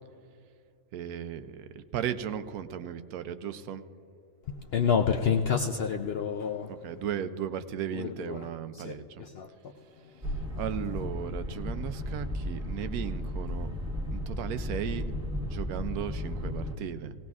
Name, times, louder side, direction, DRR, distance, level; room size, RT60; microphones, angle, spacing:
voice 1, 0.9-3.8 6.7-9.2 10.6-13.7 14.1-15.1 15.4-17.1, right 9 dB, 80° right, 11 dB, 1.1 m, -36 dB
voice 2, 4.7-6.7 7.9-8.5 8.8-9.5, left 7 dB, 65° left, 4 dB, 0.6 m, -28 dB
sound 1, 10.2-16.8, left 1 dB, 5° right, 1.2 m, -34 dB
18.5 x 17.5 x 2.4 m, 2.5 s
omnidirectional pair, 1.5 m